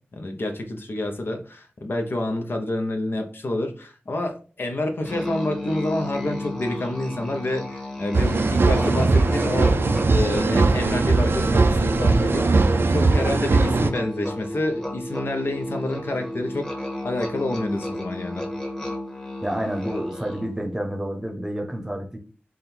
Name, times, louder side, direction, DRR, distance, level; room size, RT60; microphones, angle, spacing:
voice 1, 0.1-12.5 12.9-16.7 17.0-18.5, left 1 dB, 65° left, 4 dB, 0.7 m, -28 dB
Musical instrument, 5.0-20.6, left 1 dB, 15° left, 1.1 m, -33 dB
sound 1, 8.1-13.9, right 3 dB, 70° right, 0.4 m, -20 dB
voice 2, 19.4-22.2, right 1 dB, 15° right, 3 dB, 0.8 m, -29 dB
3.5 x 2.2 x 4.4 m, 0.37 s
wide cardioid pair, 55°, 4 cm